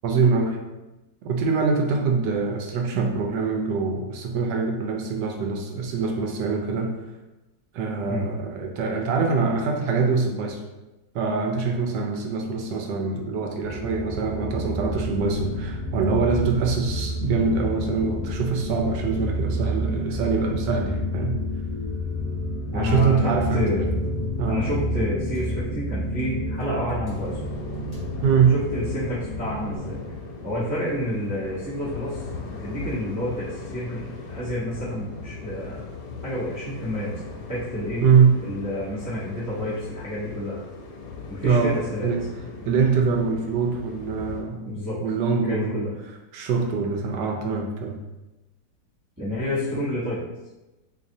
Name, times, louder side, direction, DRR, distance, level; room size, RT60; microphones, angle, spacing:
voice 1, 0.0-0.6 1.2-7.0 7.7-10.6 11.1-21.4 22.7-23.6 24.4-24.7 28.2-28.5 38.0-38.3 41.4-41.8 42.0-42.2 42.6-45.8 46.3-48.0, right 5 dB, 80° right, 2 dB, 1.3 m, -24 dB
sound 1, 13.5-29.8, equal, 15° left, 1.2 m, -29 dB
voice 2, 22.7-23.9 24.5-27.5 28.5-30.0 30.4-32.2 32.6-35.8 36.2-37.2 37.5-38.0 38.4-40.6 41.3-42.1 44.6-45.0 45.4-45.9 49.2-50.3, left 1 dB, 20° right, -11 dB, 0.4 m, -29 dB
sound 2, 27.1-44.4, left 3 dB, 70° left, 1.2 m, -38 dB
3.9 x 3.2 x 2.6 m, 1.0 s
omnidirectional pair, 1.9 m